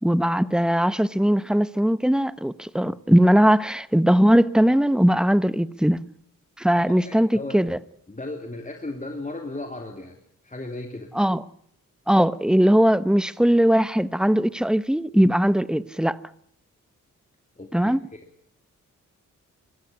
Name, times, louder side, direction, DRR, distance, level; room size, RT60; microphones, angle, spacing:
voice 1, 0.0-6.0 6.6-7.8 11.1-11.4 12.1-16.2 17.7-18.0, equal, ahead, 1.0 m, -20 dB
voice 2, 6.8-7.7 8.1-10.2 10.4-11.1 17.6-18.2, left 2 dB, 25° left, 2.9 m, -36 dB
22.0 x 15.0 x 9.6 m
cardioid pair, 50°, 32 cm